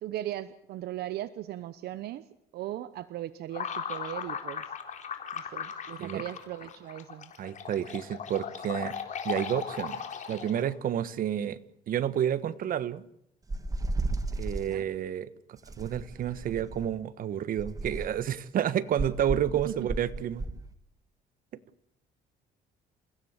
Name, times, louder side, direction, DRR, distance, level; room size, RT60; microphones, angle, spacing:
voice 1, 0.0-2.2 2.5-4.6 5.3-7.3 14.7-14.8 19.7-19.9, right 13 dB, 70° right, 14 dB, 1.0 m, -38 dB
sound 1, 3.5-10.7, left 7 dB, 45° left, 4.2 m, -37 dB
voice 2, 7.4-8.9 9.2-10.0 10.3-11.6 11.9-13.0 14.3-20.5, right 10 dB, 55° right, 15 dB, 1.3 m, -30 dB
sound 2, 13.5-14.7 15.7-16.9 17.6-18.3 19.0-20.6, right 2 dB, 20° right, 2.1 m, -33 dB
29.0 x 16.0 x 8.2 m, 0.73 s
cardioid pair, 110°, 17 cm